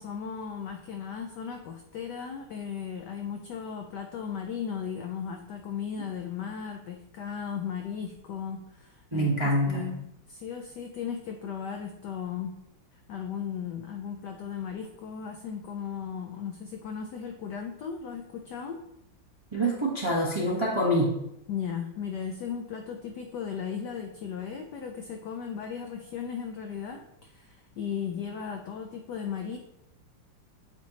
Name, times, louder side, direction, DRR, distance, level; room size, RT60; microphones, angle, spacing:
voice 1, 0.0-12.5 12.9-18.8 21.5-29.6, left 7 dB, 85° left, 4 dB, 0.9 m, -36 dB
voice 2, 9.1-9.9 19.5-21.1, equal, 35° right, -4 dB, 0.4 m, -25 dB
8.5 x 4.4 x 2.8 m, 0.84 s
omnidirectional pair, 2.4 m